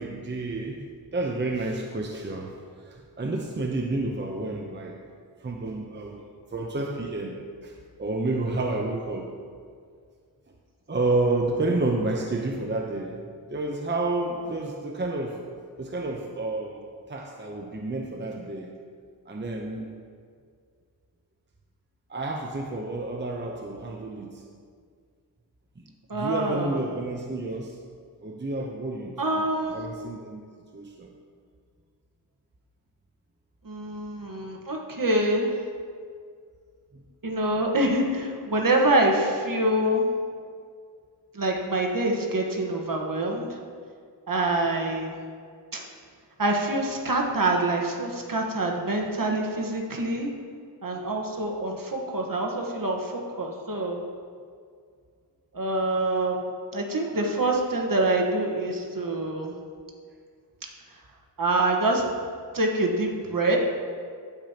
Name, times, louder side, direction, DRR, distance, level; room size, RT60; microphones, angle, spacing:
voice 1, 0.0-5.0 5.4-7.7 8.0-9.3 10.9-15.4 15.8-18.7 19.3-19.9 22.1-24.4 26.1-27.8 28.2-30.4 30.7-31.1 36.9-37.0, right 2 dB, 25° right, 1 dB, 0.7 m, -30 dB
voice 2, 26.1-26.8 29.2-29.8 33.6-35.5 37.2-40.1 41.3-43.5 44.3-45.1 45.7-45.8 46.4-50.3 50.8-54.0 55.5-56.4 56.7-59.5 61.4-62.0 62.5-63.6, right 1 dB, 55° right, 0 dB, 1.4 m, -25 dB
15.0 x 5.2 x 2.9 m, 2.1 s
cardioid pair, 55°, 41 cm